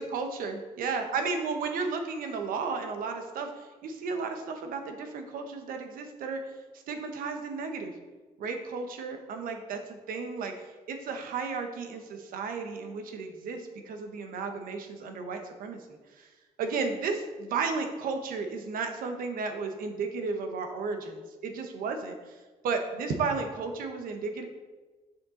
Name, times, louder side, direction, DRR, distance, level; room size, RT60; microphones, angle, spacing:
voice 1, 0.0-6.4 6.9-7.9 8.4-15.8 16.2-16.3 16.6-22.4 22.6-24.5, right 4 dB, 85° right, 5 dB, 1.1 m, -33 dB
7.6 x 6.8 x 3.9 m, 1.3 s
cardioid pair, 115°, 14 cm